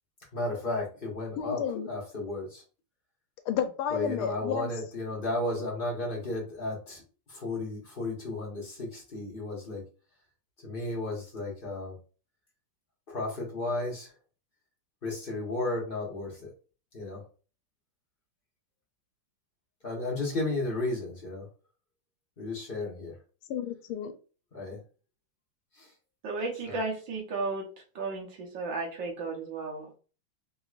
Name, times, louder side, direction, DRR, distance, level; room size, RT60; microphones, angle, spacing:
voice 1, 0.3-1.6 1.9-2.6 3.9-7.0 7.3-9.8 10.6-12.0 13.1-14.1 15.0-16.5 16.9-17.2 19.8-21.4 22.4-23.1 24.5-24.8 25.8-25.9 26.7-26.8, left 2 dB, 35° left, -3 dB, 1.0 m, -33 dB
voice 2, 1.4-2.0 3.5-4.7 23.5-24.1, left 8 dB, 80° left, 8 dB, 1.4 m, -31 dB
voice 3, 26.2-27.7 28.0-30.0, right 3 dB, 65° right, 0 dB, 1.6 m, -34 dB
3.9 x 2.9 x 2.4 m, 0.36 s
omnidirectional pair, 2.3 m